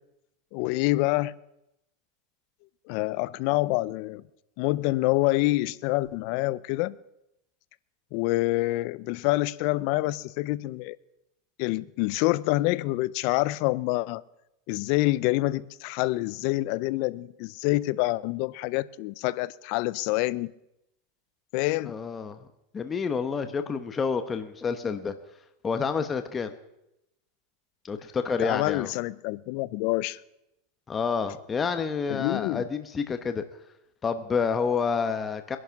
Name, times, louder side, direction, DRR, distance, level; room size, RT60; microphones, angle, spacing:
voice 1, 0.5-1.3 2.9-4.2 4.6-7.0 8.1-11.0 11.6-14.2 14.7-20.5 21.5-22.0 28.4-30.2 32.1-32.7, left 19 dB, 55° left, 0.6 m, -26 dB
voice 2, 21.9-22.4 22.7-25.1 25.6-26.5 27.8-28.9 30.9-33.4 34.0-35.6, left 5 dB, 20° left, 1.0 m, -28 dB
21.5 x 11.0 x 5.8 m
supercardioid pair, 145°, 0 cm